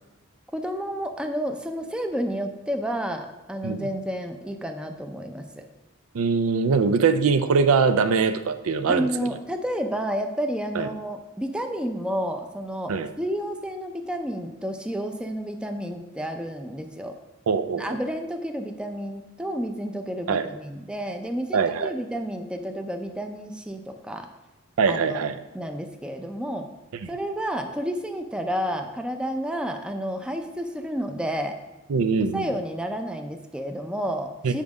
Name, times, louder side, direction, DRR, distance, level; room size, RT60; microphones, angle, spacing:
voice 1, 0.5-5.7 8.9-17.1 17.7-24.3 24.9-26.7 27.1-31.5 32.3-34.6, equal, 5° right, 5 dB, 0.5 m, -30 dB
voice 2, 6.1-9.1 10.7-10.9 12.9-13.1 17.5-18.0 20.3-20.5 21.5-21.9 24.8-25.4 31.9-32.5 34.4-34.5, right 5 dB, 80° right, 10 dB, 0.5 m, -22 dB
7.4 x 5.2 x 4.7 m, 1.0 s
head